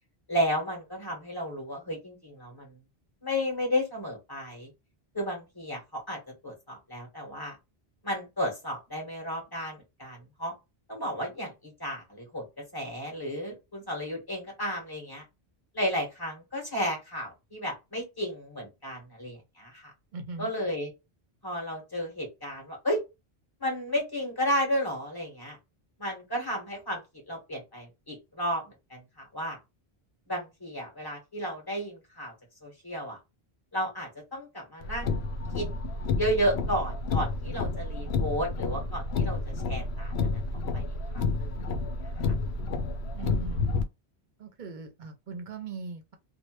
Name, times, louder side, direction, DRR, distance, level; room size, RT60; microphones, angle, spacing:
voice 1, 0.3-2.8 3.2-4.7 5.1-7.6 8.0-10.5 10.9-15.2 15.7-19.9 20.4-20.9 21.4-23.0 23.6-25.6 26.0-27.0 27.3-29.6 30.3-32.3 32.6-33.2 33.7-35.2 35.5-35.7 36.2-40.4 40.7-40.8 41.1-41.7 42.0-42.3, equal, 20° left, 1.6 m, -33 dB
voice 2, 20.1-20.5 43.1-43.7 44.4-46.1, right 4 dB, 55° right, 0.7 m, -40 dB
Car, 34.8-43.8, left 3 dB, 80° left, 0.8 m, -30 dB
3.1 x 2.1 x 3.0 m
omnidirectional pair, 1.0 m